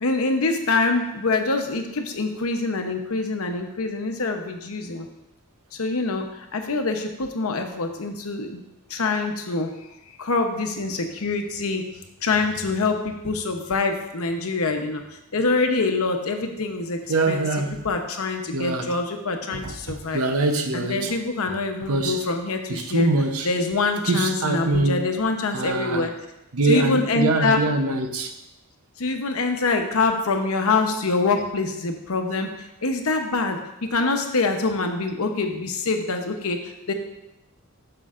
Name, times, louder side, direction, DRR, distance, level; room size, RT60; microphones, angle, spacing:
voice 1, 0.0-5.1 5.7-8.6 8.9-9.7 10.2-11.8 12.2-15.0 15.3-17.0 17.3-17.5 17.8-20.2 20.7-23.1 23.4-26.1 26.6-27.6 29.0-36.9, left 3 dB, 75° left, 5 dB, 0.9 m, -25 dB
voice 2, 17.1-17.8 18.5-18.9 19.5-21.1 21.9-22.2 22.7-23.5 24.0-25.0 25.5-26.0 26.5-28.3, right 2 dB, 75° right, 6 dB, 0.8 m, -24 dB
9.6 x 6.6 x 2.5 m, 0.91 s
head